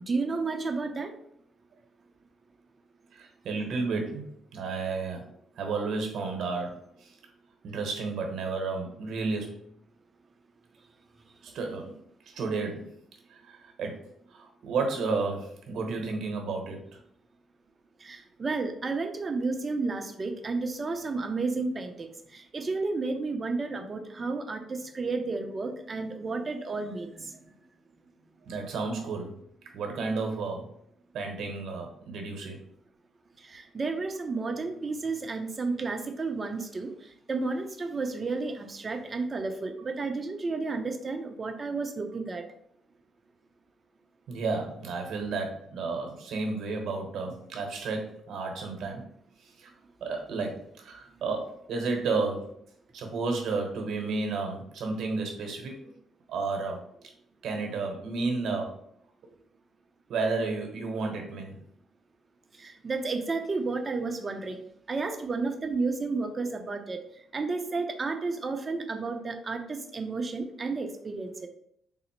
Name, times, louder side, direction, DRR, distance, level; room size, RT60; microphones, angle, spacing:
voice 1, 0.1-1.1 18.0-27.3 33.5-36.9 37.3-42.4 62.6-64.6 64.9-67.0 67.3-71.5, right 3 dB, 35° right, 6 dB, 0.6 m, -32 dB
voice 2, 3.1-5.2 5.6-7.1 7.6-9.6 11.4-12.0 12.3-12.9 13.5-14.0 14.3-16.8 28.5-29.3 29.7-30.7 31.1-32.6 44.3-49.0 49.6-49.7 50.0-52.5 52.9-55.8 56.3-56.8 57.4-58.7 60.1-61.5, right 4 dB, 70° right, 3 dB, 1.0 m, -32 dB
3.9 x 2.1 x 4.3 m, 0.71 s
cardioid pair, 90°, 0 cm